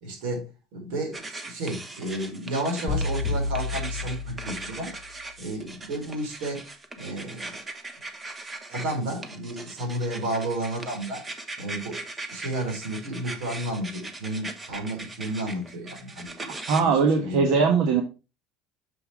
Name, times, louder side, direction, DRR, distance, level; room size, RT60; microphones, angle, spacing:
voice 1, 0.0-4.9 5.4-6.6 7.0-7.6 8.7-11.2 11.6-12.0 12.3-16.5 16.8-17.7, right 1 dB, 80° right, 0 dB, 4.2 m, -32 dB
sound 1, 1.1-16.8, right 2 dB, 15° right, 1.0 m, -39 dB
sound 2, 2.9-5.0, left 3 dB, 5° left, 2.8 m, -30 dB
voice 2, 16.7-18.0, right 5 dB, 60° right, 4 dB, 1.3 m, -20 dB
6.8 x 5.6 x 4.7 m, 0.30 s
cardioid pair, 160°, 0 cm